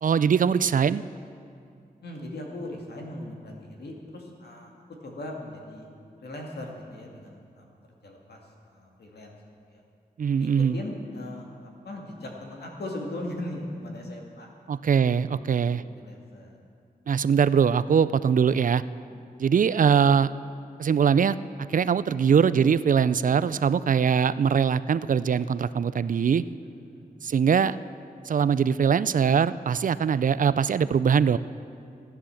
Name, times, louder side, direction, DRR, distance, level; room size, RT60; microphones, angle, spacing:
voice 1, 0.0-1.0 10.2-10.7 14.7-15.8 17.1-18.8 19.4-20.3 20.8-26.4 27.2-27.8 28.3-31.4, right 7 dB, 55° right, 16 dB, 0.4 m, -22 dB
voice 2, 2.0-4.7 5.0-5.9 6.2-7.7 8.0-9.4 9.7-9.8 10.4-14.5 15.3-15.4 15.6-16.6 18.5-18.6 19.1-19.2 26.8-27.1, left 1 dB, 85° left, 0 dB, 2.2 m, -39 dB
14.5 x 10.0 x 7.1 m, 2.4 s
wide cardioid pair, 105°, 16 cm